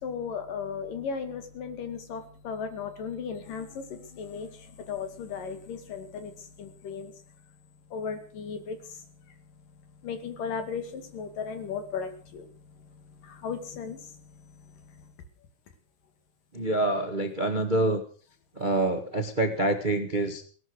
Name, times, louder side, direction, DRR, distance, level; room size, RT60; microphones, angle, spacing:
voice 1, 0.0-7.1 7.9-9.0 10.0-12.5 13.2-14.2, left 6 dB, 90° left, 8 dB, 4.0 m, -36 dB
voice 2, 16.5-18.0 18.5-20.5, right 2 dB, 30° right, 7 dB, 0.8 m, -26 dB
18.0 x 12.5 x 6.5 m, 0.44 s
omnidirectional pair, 3.7 m